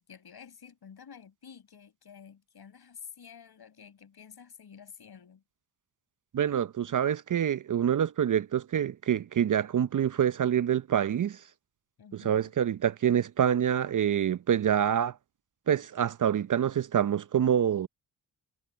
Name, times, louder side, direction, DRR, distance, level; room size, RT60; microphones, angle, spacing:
voice 1, 0.0-5.4 12.0-12.6, left 7 dB, 60° left, 5.6 m, -50 dB
voice 2, 6.3-11.4 12.1-15.2 15.7-17.9, right 9 dB, 45° right, 0.7 m, -26 dB
cardioid pair, 65°, 44 cm